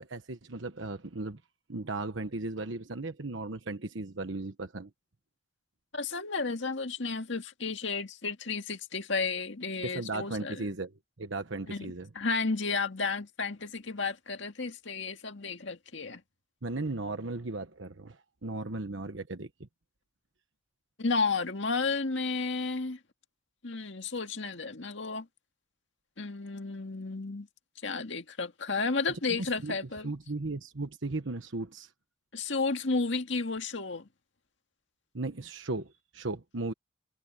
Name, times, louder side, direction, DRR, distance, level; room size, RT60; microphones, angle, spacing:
voice 1, 0.0-1.4 1.7-4.9 9.8-10.9 11.2-12.1 16.6-19.7 29.1-29.7 30.0-31.9 35.1-36.7, right 2 dB, 70° right, 1.2 m, -36 dB
voice 2, 5.9-10.6 11.7-16.2 21.0-23.0 23.6-25.3 26.2-27.5 27.8-30.1 32.3-34.0, left 4 dB, 65° left, 2.0 m, -32 dB
head